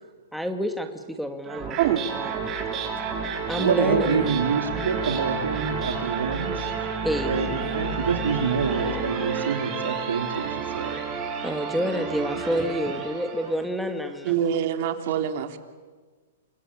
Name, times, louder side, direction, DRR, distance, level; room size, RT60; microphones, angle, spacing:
voice 1, 0.3-2.3 3.5-4.3 7.0-7.8 11.4-14.3, equal, ahead, 7 dB, 2.1 m, -29 dB
sound 1, 1.4-13.7, right 6 dB, 25° right, 6.4 m, -30 dB
voice 2, 3.5-6.7 7.2-11.0 15.1-15.2, right 5 dB, 85° right, 5 dB, 3.8 m, -26 dB
voice 3, 14.2-15.6, right 10 dB, 50° right, 6 dB, 3.2 m, -24 dB
29.0 x 24.0 x 8.6 m, 1.4 s
hypercardioid pair, 135°, 0 cm